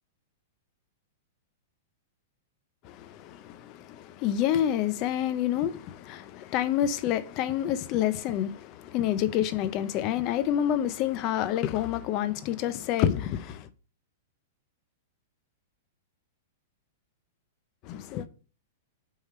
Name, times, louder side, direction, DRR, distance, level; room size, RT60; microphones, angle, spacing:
voice 1, 2.8-13.7 17.8-18.3, left 11 dB, 30° left, 0.4 m, -28 dB
6.5 x 3.7 x 4.2 m
supercardioid pair, 170°, 0 cm